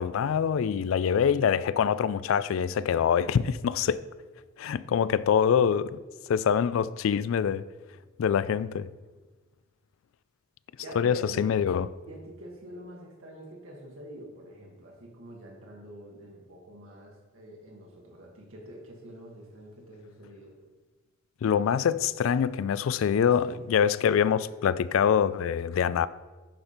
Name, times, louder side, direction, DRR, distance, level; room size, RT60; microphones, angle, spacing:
voice 1, 0.0-4.0 4.6-6.0 6.3-7.6 8.2-8.9 11.0-11.9 21.4-26.1, left 7 dB, 80° left, 0.3 m, -25 dB
voice 2, 10.8-11.6 12.1-20.5 23.4-23.6, equal, 85° right, 1.6 m, -46 dB
10.5 x 4.3 x 5.0 m
head